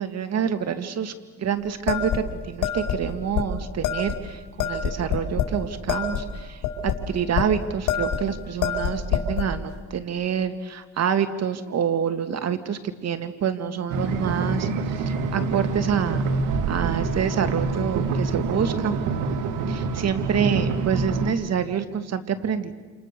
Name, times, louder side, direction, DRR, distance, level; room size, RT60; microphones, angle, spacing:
voice 1, 0.0-16.2 16.7-19.0 19.7-22.7, right 7 dB, 60° right, 9 dB, 2.2 m, -27 dB
sound 1, 1.9-3.0 3.3-3.5 3.8-4.2 4.6-5.6 5.9-7.5 7.9-8.3 8.6-9.5, left 7 dB, 80° left, 4.9 m, -25 dB
sound 2, 13.9-21.3, right 4 dB, 90° right, 2.1 m, -26 dB
29.0 x 28.0 x 6.9 m, 1.3 s
cardioid pair, 90°, 30 cm